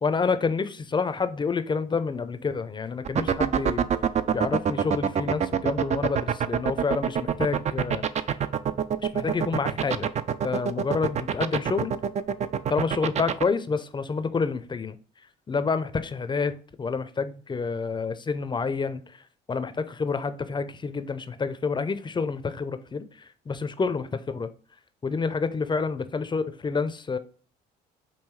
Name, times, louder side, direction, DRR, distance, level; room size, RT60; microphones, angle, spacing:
voice 1, 0.0-3.9 4.3-8.0 9.0-10.1 10.4-11.9 12.7-15.0 15.5-19.0 19.5-24.5 25.0-27.2, left 4 dB, 25° left, 0.5 m, -28 dB
sound 1, 3.0-13.4, right 8 dB, 35° right, 0.4 m, -24 dB
5.4 x 2.7 x 3.1 m
supercardioid pair, 70°, 20 cm